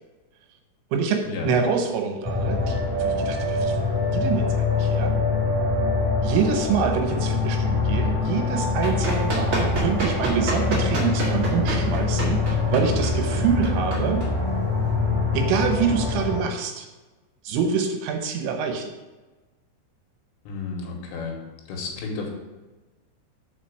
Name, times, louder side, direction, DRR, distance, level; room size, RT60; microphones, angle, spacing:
voice 1, 0.9-5.1 6.2-14.3 15.3-16.9 17.4-18.9, right 6 dB, 85° right, 4 dB, 3.3 m, -26 dB
sound 1, 2.2-16.4, left 3 dB, 20° left, 0.9 m, -24 dB
Run, 8.5-14.9, right 3 dB, 50° right, 1.6 m, -29 dB
voice 2, 20.5-21.4 21.7-22.3, left 4 dB, 80° left, 1 dB, 3.3 m, -32 dB
5.8 x 5.1 x 6.4 m, 1.2 s
omnidirectional pair, 5.1 m